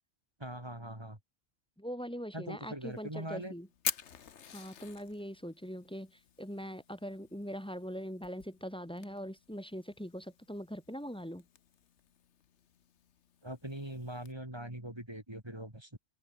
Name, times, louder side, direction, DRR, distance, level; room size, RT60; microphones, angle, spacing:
voice 1, 0.4-1.2 2.3-3.5 13.4-16.0, right 1 dB, 20° right, 4.3 m, -42 dB
voice 2, 1.8-3.7 4.5-11.4, equal, 5° left, 1.1 m, -42 dB
Fire, 2.8-14.3, left 8 dB, 75° left, 1.4 m, -47 dB
omnidirectional pair, 1.2 m